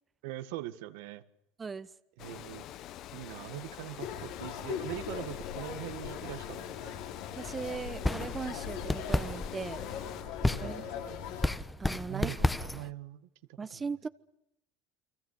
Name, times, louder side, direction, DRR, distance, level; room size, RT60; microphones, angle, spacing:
voice 1, 0.2-1.2 2.2-2.7 3.1-7.0 10.5-10.9 12.0-13.3 13.7-13.8, right 15 dB, 75° right, 11 dB, 1.7 m, -42 dB
voice 2, 1.6-1.9 7.4-9.8 10.4-11.2 11.8-12.3 13.6-14.1, right 5 dB, 25° right, 13 dB, 1.0 m, -39 dB
Water, 2.2-10.2, left 13 dB, 55° left, 1.1 m, -47 dB
sound 1, 4.0-11.5, left 8 dB, 70° left, 6.6 m, -40 dB
sound 2, 7.9-12.9, left 2 dB, 10° left, 1.2 m, -33 dB
29.5 x 24.0 x 6.7 m, 0.83 s
supercardioid pair, 95°, 0 cm